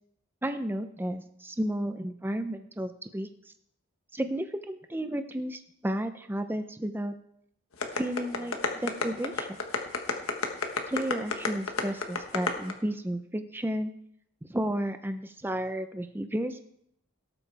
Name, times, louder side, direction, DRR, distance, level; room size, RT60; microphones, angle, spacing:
voice 1, 0.4-3.3 4.1-7.1 7.9-9.5 10.9-13.9 14.5-16.6, right 1 dB, 10° right, 9 dB, 0.6 m, -32 dB
sound 1, 7.8-12.7, left 4 dB, 80° left, 1.3 m, -29 dB
18.0 x 8.2 x 3.4 m, 0.73 s
head